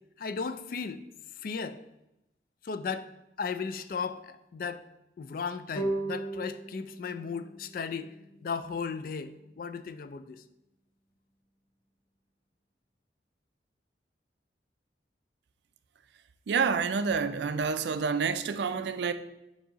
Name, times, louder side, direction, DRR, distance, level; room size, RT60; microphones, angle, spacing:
voice 1, 0.2-1.0 1.4-1.8 2.6-3.1 3.4-4.8 5.2-8.1 8.4-10.4, left 5 dB, 50° left, 0.3 m, -35 dB
sound 1, 5.8-9.0, right 2 dB, 25° left, 0.7 m, -37 dB
voice 2, 16.5-19.1, right 5 dB, 75° right, 0.4 m, -28 dB
7.2 x 2.7 x 5.0 m
head